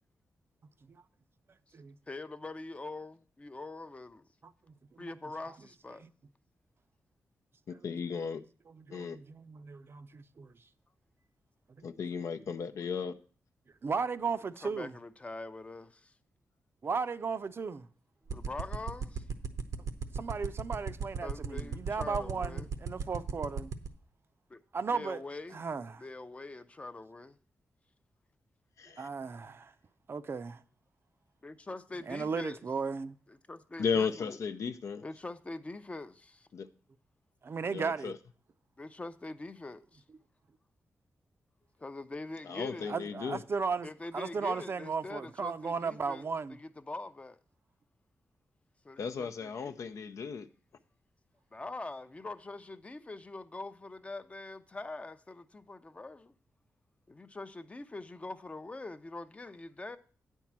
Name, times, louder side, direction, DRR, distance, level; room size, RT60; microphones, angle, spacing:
voice 1, 2.1-4.2 5.0-6.1 14.6-16.1 18.3-19.3 21.2-22.7 24.5-24.6 24.9-25.7 26.0-27.4 31.4-32.6 33.3-34.4 35.0-36.5 38.8-40.0 41.8-42.9 43.8-47.4 48.8-49.9 51.5-56.3 57.1-60.0, left 2 dB, 25° left, 0.6 m, -43 dB
voice 2, 7.7-8.4 8.9-9.2 11.8-13.1 28.8-29.1 33.8-35.0 36.5-36.7 37.7-38.2 42.4-43.4 49.0-50.5, left 6 dB, 70° left, 0.6 m, -35 dB
voice 3, 8.8-10.5 13.8-14.9 16.8-17.9 20.1-23.7 24.7-25.2 25.5-26.0 29.0-29.7 30.1-30.6 32.1-33.1 37.4-38.1 42.9-46.6, right 5 dB, 45° right, 0.5 m, -35 dB
sound 1, 18.3-23.9, right 6 dB, 80° right, 0.8 m, -34 dB
9.2 x 4.6 x 7.3 m
wide cardioid pair, 100°, 5 cm